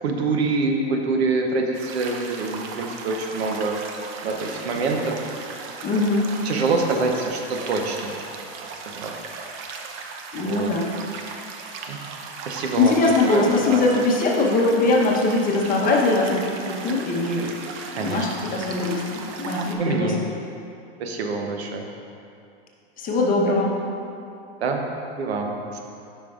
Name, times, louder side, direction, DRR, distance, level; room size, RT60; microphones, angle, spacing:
voice 1, 0.0-3.7 4.2-5.3 6.4-8.1 8.9-9.1 10.3-10.7 11.9-12.0 12.4-12.9 13.3-13.8 17.9-18.2 19.8-20.2 21.0-21.8 24.6-24.8 25.2-25.8, right 3 dB, 85° right, 2 dB, 0.9 m, -25 dB
sound 1, 1.7-19.7, right 4 dB, 40° right, 0.7 m, -37 dB
voice 2, 5.8-6.4 10.3-10.9 12.8-17.5 17.9-20.2 23.0-23.8, left 2 dB, 25° left, -2 dB, 1.0 m, -21 dB
9.3 x 5.4 x 2.4 m, 2.6 s
hypercardioid pair, 115°, 31 cm